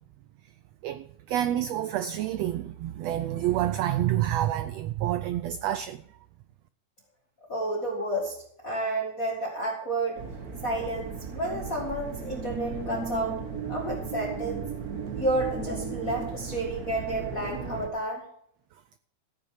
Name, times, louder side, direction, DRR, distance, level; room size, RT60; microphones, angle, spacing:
voice 1, 0.8-6.0, right 12 dB, 85° right, 1.5 m, -28 dB
voice 2, 7.5-8.4 8.6-10.2 10.6-13.3 13.7-14.6 15.1-18.2, right 1 dB, 30° left, 2.1 m, -30 dB
sound 1, 10.2-17.9, right 5 dB, 60° right, 0.9 m, -36 dB
14.5 x 9.3 x 4.8 m
omnidirectional pair, 3.6 m